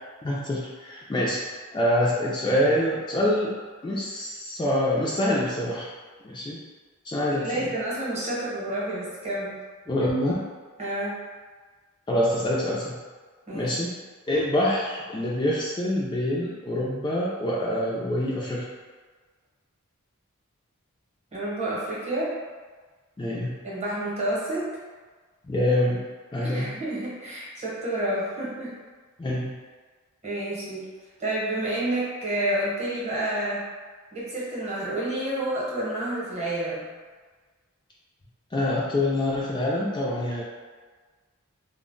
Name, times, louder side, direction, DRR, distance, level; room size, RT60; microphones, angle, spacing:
voice 1, 0.2-1.4 1.7-3.5 3.8-5.9 6.2-6.6 7.0-7.7 9.9-10.4 12.1-13.0 13.5-14.0 14.3-18.7 23.2-23.6 25.4-26.1 26.3-26.7 29.2-29.5 38.5-40.4, left 1 dB, 20° left, -6 dB, 0.3 m, -25 dB
voice 2, 7.3-9.6 10.8-11.2 13.5-13.7 21.3-22.3 23.6-24.7 26.4-28.7 30.2-30.9 31.2-33.6 34.1-36.9, right 1 dB, 30° right, -7 dB, 0.8 m, -29 dB
2.1 x 2.0 x 3.7 m, 1.4 s
head